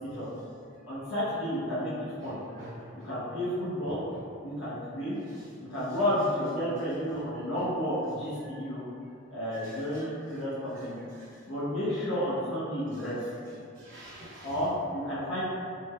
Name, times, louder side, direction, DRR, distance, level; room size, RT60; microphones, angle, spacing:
voice 1, 0.9-1.9 2.2-2.4 2.9-4.0 4.4-5.2 5.7-8.8 9.3-11.0 11.4-13.2 14.4-15.4, equal, 80° left, -11 dB, 0.7 m, -31 dB
voice 2, 2.2-3.1 3.8-4.2 5.3-5.5 7.3-7.4 8.4-8.7 9.0-9.1 9.5-10.4 10.7-11.6 12.9-13.1 13.7-14.6, right 1 dB, 65° right, -7 dB, 0.4 m, -49 dB
3.1 x 2.0 x 2.2 m, 2.3 s
head